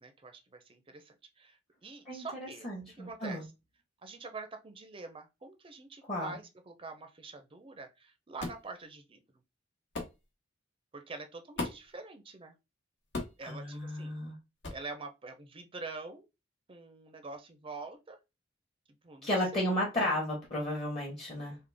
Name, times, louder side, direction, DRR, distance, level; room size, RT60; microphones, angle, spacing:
voice 1, 0.0-2.7 3.0-3.5 4.0-9.2 10.9-12.5 13.4-14.1 14.7-16.2 16.7-18.2 19.0-19.7, right 3 dB, 30° right, 0.5 m, -45 dB
voice 2, 2.1-3.4 6.1-6.3 13.4-14.4 19.2-21.6, left 1 dB, 35° left, 1.1 m, -33 dB
sound 1, 8.4-8.7 9.9-10.2 11.6-11.9 13.1-13.5 14.6-14.9, left 2 dB, 65° left, 1.1 m, -37 dB
3.7 x 2.1 x 3.3 m
head